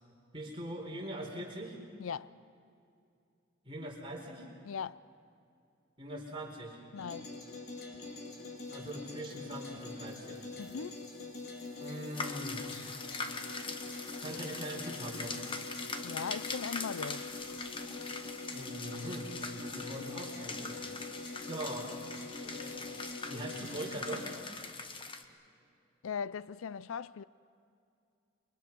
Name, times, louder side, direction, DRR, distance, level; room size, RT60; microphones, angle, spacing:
voice 1, 0.3-1.8 3.6-4.5 6.0-6.8 8.7-10.5 11.8-12.6 14.2-15.3 18.5-21.1 21.4-21.9 22.4-23.0 23.3-24.4, right 1 dB, 25° right, 4.4 m, -42 dB
voice 2, 2.0-2.3 4.6-5.0 6.9-7.3 10.6-11.0 16.0-17.2 26.0-27.2, left 6 dB, 85° left, 0.5 m, -39 dB
sound 1, 7.0-24.4, left 3 dB, 55° left, 3.7 m, -44 dB
sound 2, 12.1-25.2, left 4 dB, 25° left, 1.2 m, -42 dB
29.0 x 23.5 x 6.1 m
head